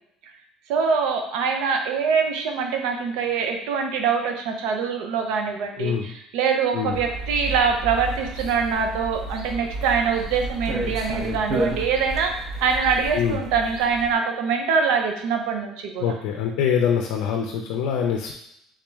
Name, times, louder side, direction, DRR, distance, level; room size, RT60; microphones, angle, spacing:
voice 1, 0.7-12.3 12.6-16.1, right 5 dB, 75° right, 4 dB, 0.6 m, -24 dB
voice 2, 5.8-6.1 6.7-7.0 13.1-13.4 16.0-18.3, left 8 dB, 75° left, 2 dB, 0.4 m, -24 dB
sound 1, 6.9-14.1, right 2 dB, 35° right, 0.7 m, -31 dB
3.6 x 3.1 x 3.4 m, 0.75 s
cardioid pair, 170°, 0 cm